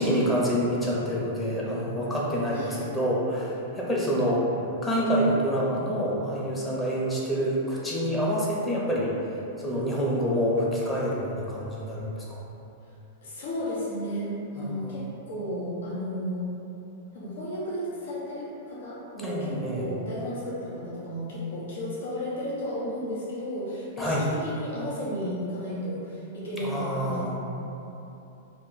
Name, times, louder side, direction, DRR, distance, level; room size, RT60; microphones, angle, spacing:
voice 1, 0.0-4.5 4.8-9.1 9.6-12.4 14.6-14.9 19.2-19.8 24.0-24.2 26.6-27.3, equal, 10° left, -6 dB, 0.7 m, -27 dB
voice 2, 13.2-14.3 14.5-16.4 17.1-27.3, equal, 75° left, -7 dB, 0.8 m, -33 dB
2.5 x 2.2 x 3.8 m, 2.9 s
hypercardioid pair, 120°, 0 cm